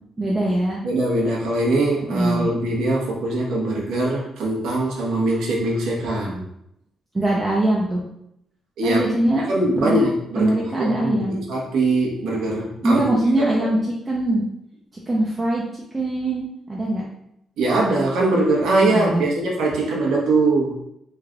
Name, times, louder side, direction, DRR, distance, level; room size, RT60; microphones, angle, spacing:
voice 1, 0.2-0.8 2.1-2.5 7.1-8.0 8.8-9.5 9.8-10.0 10.3-11.4 12.8-13.8 14.1-14.5 15.1-15.6 15.9-17.0 18.8-19.2, right 1 dB, 20° right, -3 dB, 0.4 m, -22 dB
voice 2, 0.8-6.4 8.8-9.0 9.3-13.0 13.5-13.6 17.6-20.7, right 2 dB, 80° right, -3 dB, 1.0 m, -22 dB
3.2 x 2.3 x 3.6 m, 0.78 s
cardioid pair, 150°, 0 cm